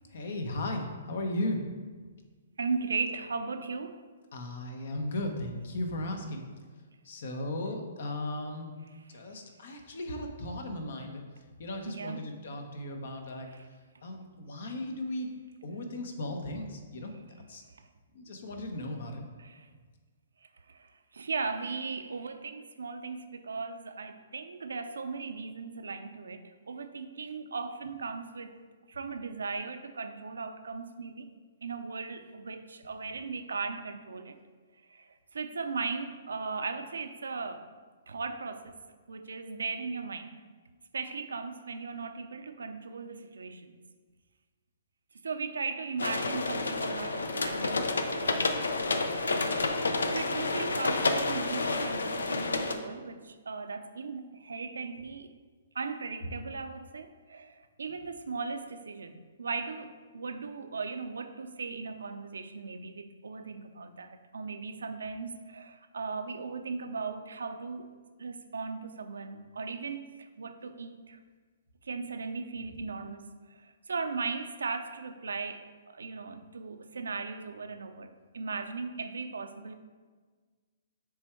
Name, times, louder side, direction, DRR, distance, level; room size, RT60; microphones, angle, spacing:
voice 1, 0.1-1.6 4.3-6.4 7.0-8.7 9.1-11.2 11.6-13.5 14.0-15.3 15.6-17.1 17.5-17.6 18.1-19.2, left 1 dB, 65° left, 4 dB, 1.0 m, -36 dB
voice 2, 2.6-4.0 8.9-9.2 11.9-12.4 13.5-13.7 17.7-17.8 19.4-19.7 20.4-28.6 28.9-31.3 31.6-34.4 34.9-37.6 38.1-38.8 39.1-40.4 40.9-43.8 45.2-48.7 49.7-55.3 55.7-67.9 68.2-71.2 71.8-79.8, right 4 dB, 85° right, 8 dB, 0.5 m, -38 dB
sound 1, 46.0-52.7, left 3 dB, 90° left, 0.5 m, -30 dB
7.0 x 3.4 x 4.6 m, 1.4 s
hypercardioid pair, 135°, 0 cm